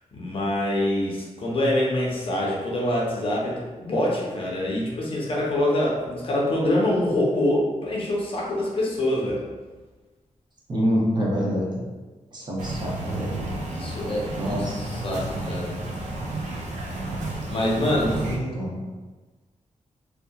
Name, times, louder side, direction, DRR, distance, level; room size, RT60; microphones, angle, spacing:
voice 1, 0.1-9.4 13.7-15.8 17.5-18.1, left 1 dB, 50° left, -4 dB, 0.6 m, -25 dB
voice 2, 10.7-11.7 12.3-13.3 14.2-15.0 18.0-18.8, equal, 35° right, -4 dB, 0.6 m, -27 dB
sound 1, 12.6-18.4, right 2 dB, 80° right, 0.4 m, -32 dB
2.7 x 2.1 x 2.3 m, 1.2 s
wide cardioid pair, 140°, 12 cm